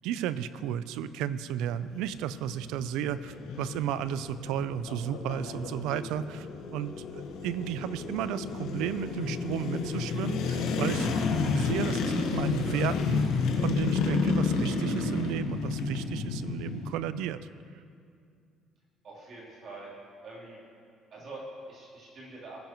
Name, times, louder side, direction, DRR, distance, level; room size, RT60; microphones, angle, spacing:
voice 1, 0.0-6.5 6.7-11.1 11.5-17.5, right 10 dB, 90° right, 14 dB, 0.4 m, -33 dB
sound 1, 1.7-16.9, left 4 dB, 80° left, 1.3 m, -31 dB
voice 2, 19.0-19.9 20.2-20.6 21.1-22.6, right 2 dB, 45° right, -6 dB, 3.4 m, -45 dB
18.5 x 10.5 x 3.0 m, 2.3 s
cardioid pair, 160°, 0 cm